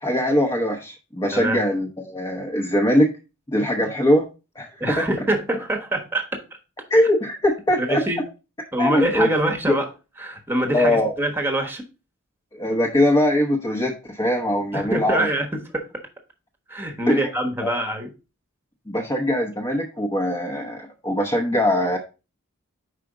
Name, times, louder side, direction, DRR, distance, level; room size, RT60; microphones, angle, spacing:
voice 1, 0.0-3.1 3.5-4.3 4.6-4.7 5.0-5.1 6.9-8.0 8.8-9.3 9.7-9.8 10.7-11.1 12.5-15.3 17.1-17.3 17.6-17.7 18.9-22.0, left 1 dB, 20° left, 0.8 m, -21 dB
voice 2, 4.8-6.3 7.8-8.2 8.7-9.9 10.2-11.8 14.7-15.9 16.7-18.1, right 1 dB, 10° right, 1.1 m, -24 dB
5.0 x 4.8 x 4.8 m
head